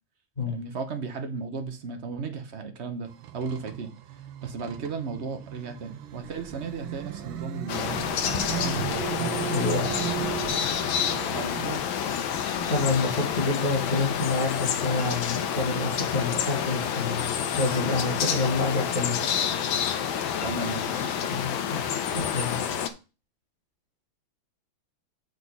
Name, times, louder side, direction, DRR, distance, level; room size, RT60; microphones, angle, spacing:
voice 1, 0.5-8.1 8.5-9.0 11.3-11.8 20.4-21.2, right 5 dB, 45° right, 0.9 m, -35 dB
sound 1, 3.1-11.8, right 11 dB, 80° right, 1.6 m, -36 dB
sound 2, 7.7-22.9, left 8 dB, 80° left, 1.5 m, -28 dB
voice 2, 9.5-10.1 12.4-19.2 21.3-22.6, left 3 dB, 20° left, 2.4 m, -28 dB
6.4 x 5.1 x 5.4 m
omnidirectional pair, 2.2 m